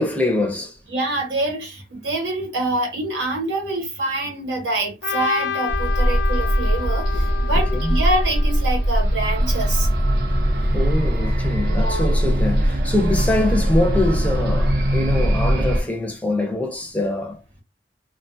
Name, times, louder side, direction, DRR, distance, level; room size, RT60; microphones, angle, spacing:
voice 1, 0.0-0.8 7.2-8.0 10.4-17.4, left 1 dB, 10° left, 0.5 m, -24 dB
voice 2, 0.9-9.9 11.7-12.2, right 2 dB, 90° right, 1.0 m, -26 dB
Trumpet, 5.0-9.2, left 8 dB, 75° left, 0.3 m, -30 dB
sound 1, 5.7-15.8, equal, 55° right, 0.6 m, -20 dB
2.5 x 2.2 x 2.6 m
head